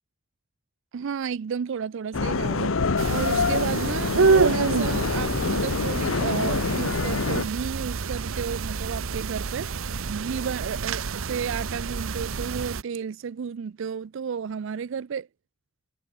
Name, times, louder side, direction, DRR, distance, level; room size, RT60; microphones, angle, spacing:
voice 1, 0.9-2.7 3.1-15.3, right 6 dB, 65° right, 0.4 m, -32 dB
sound 1, 2.1-7.4, left 4 dB, 90° left, 1.0 m, -26 dB
sound 2, 3.0-12.8, right 4 dB, 90° right, 0.8 m, -27 dB
head